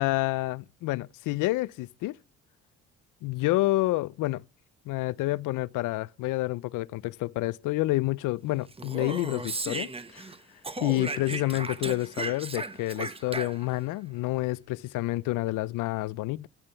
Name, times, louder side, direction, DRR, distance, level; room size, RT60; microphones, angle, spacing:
voice 1, 0.0-2.2 3.2-4.4 4.9-10.3 10.8-16.5, left 19 dB, 90° left, 0.5 m, -29 dB
Speech, 8.7-10.4 10.6-13.8, right 3 dB, 20° right, 1.0 m, -36 dB
12.5 x 8.8 x 5.6 m
cardioid pair, 90°, 30 cm